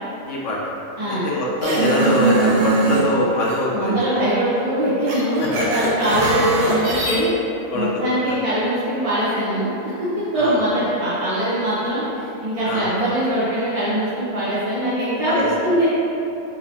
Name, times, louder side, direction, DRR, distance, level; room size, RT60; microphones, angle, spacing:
voice 1, 0.3-0.6 1.1-4.0 5.4-5.5 7.7-7.9 8.3-8.4 10.3-10.6 12.6-12.9 15.3-15.5, left 1 dB, 70° left, -4 dB, 1.0 m, -23 dB
sound 1, 1.6-3.0 3.4-3.6 5.1-7.2, right 3 dB, 70° right, 1.2 m, -21 dB
voice 2, 3.7-7.3 7.7-15.9, right 1 dB, 35° right, -11 dB, 0.7 m, -22 dB
4.1 x 2.9 x 4.1 m, 2.9 s
omnidirectional pair, 1.4 m